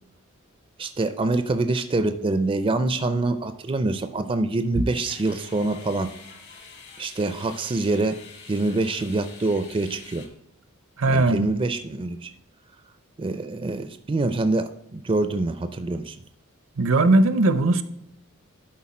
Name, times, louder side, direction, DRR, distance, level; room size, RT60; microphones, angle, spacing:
voice 1, 0.8-6.1 7.0-8.2 8.5-10.3 11.1-12.3 13.2-16.2, right 2 dB, 25° right, 0.4 m, -25 dB
sound 1, 4.9-10.3, left 5 dB, 55° left, 1.4 m, -46 dB
voice 2, 11.0-11.5 16.8-17.8, right 2 dB, 65° right, 0.6 m, -19 dB
11.5 x 4.4 x 4.3 m
head